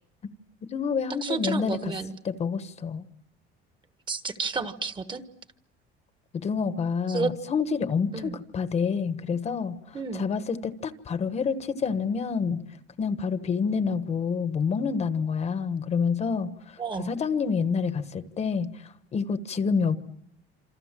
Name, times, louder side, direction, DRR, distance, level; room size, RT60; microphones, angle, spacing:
voice 1, 0.6-1.9 2.2-3.0 6.3-12.6 13.0-20.0, left 5 dB, 30° left, 11 dB, 1.2 m, -28 dB
voice 2, 1.2-2.1 4.1-5.2 7.1-7.3 8.1-8.4 9.9-10.3 16.8-17.1, right 4 dB, 20° right, 10 dB, 1.4 m, -31 dB
27.5 x 26.5 x 7.5 m, 0.74 s
cardioid pair, 160°, 21 cm